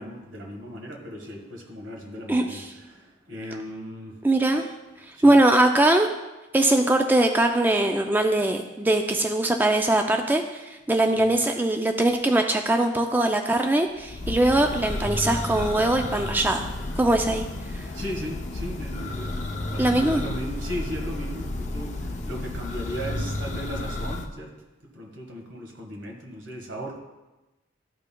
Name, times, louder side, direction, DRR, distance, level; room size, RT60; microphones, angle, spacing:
voice 1, 0.0-4.2 5.2-5.4 11.1-11.4 17.9-24.5 24.9-27.0, equal, 80° right, 1 dB, 1.6 m, -37 dB
voice 2, 2.3-2.6 4.2-4.7 5.2-6.1 6.5-16.6 17.0-17.4 17.7-17.8 19.8-20.2, right 1 dB, 10° right, 4 dB, 0.3 m, -21 dB
Church bell, 14.0-24.3, left 2 dB, 40° left, 0.6 m, -32 dB
13.0 x 5.5 x 2.2 m, 1.1 s
head